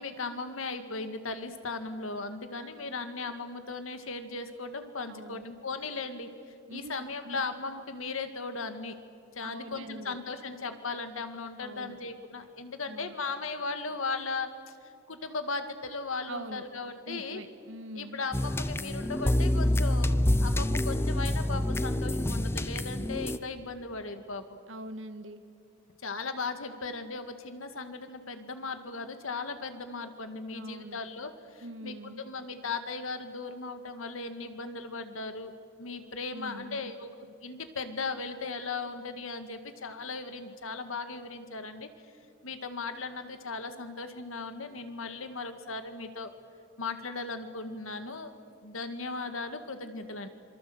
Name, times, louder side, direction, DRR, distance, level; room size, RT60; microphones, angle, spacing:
voice 1, 0.0-6.3 6.7-9.0 9.4-14.5 15.1-17.4 17.9-24.6 26.0-35.5 35.8-41.9 42.4-46.3 46.8-48.3 48.6-50.3, left 4 dB, 85° left, 8 dB, 2.0 m, -37 dB
voice 2, 5.1-5.4 6.7-6.9 7.2-7.4 9.4-10.2 11.6-12.0 12.9-13.1 16.3-16.6 17.1-18.2 24.7-25.4 30.5-31.0 31.6-32.2 36.3-36.9, right 1 dB, 75° right, 9 dB, 1.7 m, -43 dB
sound 1, 18.3-23.4, left 1 dB, 10° left, 0.5 m, -27 dB
26.5 x 24.0 x 8.0 m, 2.3 s
head